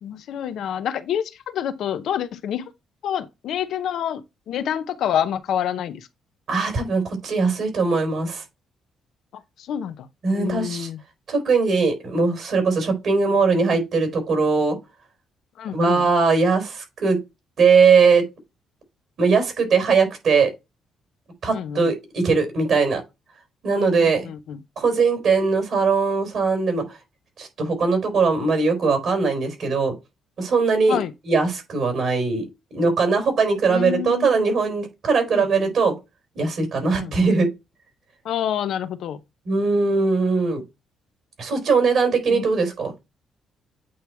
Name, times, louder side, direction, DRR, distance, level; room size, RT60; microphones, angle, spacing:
voice 1, 0.0-2.7 3.0-4.2 4.5-6.1 9.7-10.1 10.3-11.0 15.6-16.0 21.5-21.9 24.0-24.6 30.9-31.1 33.7-34.4 35.3-35.7 37.0-37.1 38.2-39.2 42.3-42.4, left 9 dB, 75° left, 0.7 m, -27 dB
voice 2, 6.5-8.4 10.2-10.9 11.3-14.8 15.7-17.2 17.6-18.2 19.2-20.5 21.4-23.0 23.6-24.3 24.8-26.8 27.4-29.9 30.4-31.0 31.2-32.5 32.7-35.9 36.3-37.5 39.5-40.6 41.4-42.9, right 4 dB, 60° right, 3.9 m, -20 dB
8.6 x 2.9 x 4.7 m
cardioid pair, 90°, 0 cm